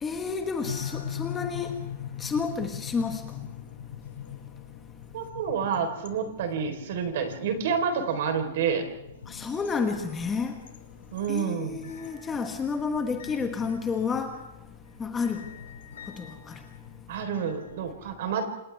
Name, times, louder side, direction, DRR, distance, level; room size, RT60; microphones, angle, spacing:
voice 1, 0.0-1.8 2.2-3.5 9.3-10.6 11.3-14.4 15.0-15.5 16.1-16.6, left 5 dB, 10° left, 1.4 m, -30 dB
sound 1, 0.6-17.8, left 9 dB, 90° left, 3.4 m, -42 dB
voice 2, 5.1-8.8 11.1-11.9 17.1-18.4, right 6 dB, 55° right, 4.2 m, -29 dB
29.0 x 27.5 x 3.6 m
hypercardioid pair, 170°, 0 cm